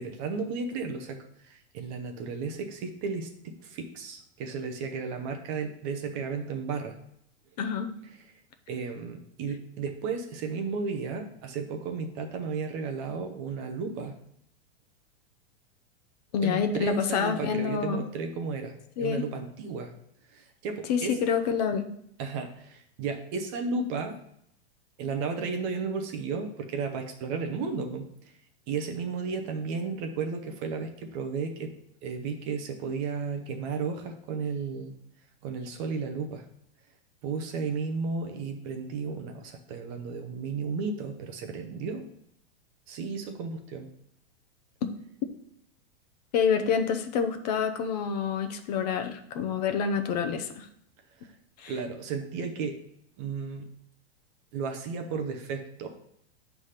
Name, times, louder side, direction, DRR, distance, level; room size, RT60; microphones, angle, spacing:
voice 1, 0.0-7.0 8.7-14.2 16.4-19.9 20.3-21.2 22.2-24.2 25.0-28.3 28.7-31.7 32.0-34.9 35.4-36.5 37.2-42.1 42.9-43.9 51.2-51.3 51.7-52.8 53.2-53.7 54.5-56.0, right 5 dB, 25° right, 5 dB, 0.6 m, -34 dB
voice 2, 7.6-7.9 16.3-18.0 19.0-19.3 20.9-21.9 46.3-50.7 51.6-51.7, left 6 dB, 40° left, 7 dB, 0.7 m, -27 dB
8.0 x 3.4 x 5.7 m, 0.73 s
supercardioid pair, 165°, 33 cm